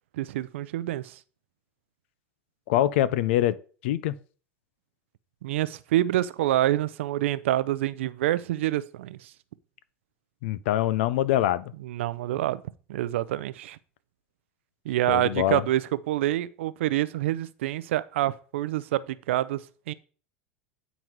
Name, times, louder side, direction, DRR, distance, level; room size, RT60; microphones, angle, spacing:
voice 1, 0.2-1.2 5.4-9.3 11.8-12.6 12.9-13.8 14.9-19.9, right 14 dB, 80° right, 0.5 m, -27 dB
voice 2, 2.7-3.6 3.8-4.1 10.4-11.7 15.1-15.6, left 13 dB, 75° left, 0.6 m, -24 dB
9.2 x 4.0 x 4.6 m
supercardioid pair, 120°, 7 cm